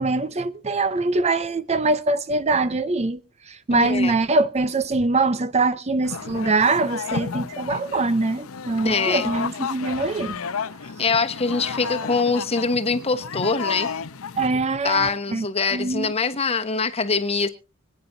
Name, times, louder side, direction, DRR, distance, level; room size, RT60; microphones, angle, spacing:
voice 1, 0.0-3.2 3.5-10.4 14.4-15.5 15.7-16.1, right 3 dB, 30° right, 0.6 m, -23 dB
voice 2, 3.7-4.1 8.8-9.3 11.0-13.9 14.8-17.5, left 4 dB, 30° left, 1.1 m, -23 dB
sound 1, 6.0-14.5, left 6 dB, 90° left, 0.8 m, -32 dB
25.5 x 9.4 x 2.7 m
head